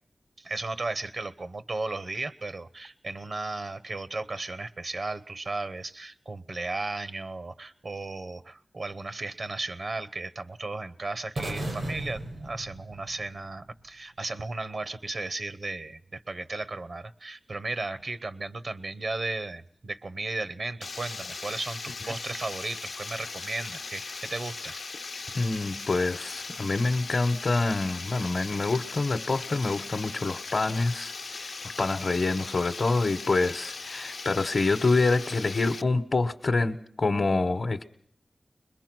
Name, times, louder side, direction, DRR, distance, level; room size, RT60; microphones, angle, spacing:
voice 1, 0.4-24.8, right 3 dB, 70° right, 14 dB, 0.8 m, -35 dB
sound 1, 11.4-13.5, right 1 dB, 90° right, 5.6 m, -35 dB
Water, 20.8-35.8, left 4 dB, 90° left, 0.8 m, -39 dB
voice 2, 25.3-37.8, left 3 dB, 60° left, 6 dB, 0.9 m, -26 dB
22.0 x 21.5 x 6.1 m, 0.62 s
wide cardioid pair, 70°, 0 cm